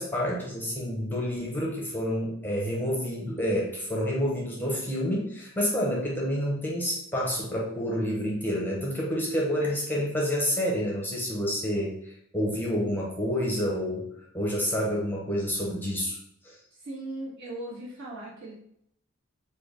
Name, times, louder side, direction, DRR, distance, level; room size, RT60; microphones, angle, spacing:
voice 1, 0.0-14.1 14.3-16.2 16.4-16.5, equal, 10° left, -3 dB, 0.6 m, -28 dB
voice 2, 16.8-18.5, right 1 dB, 60° right, -6 dB, 1.4 m, -38 dB
3.3 x 2.3 x 3.6 m, 0.72 s
head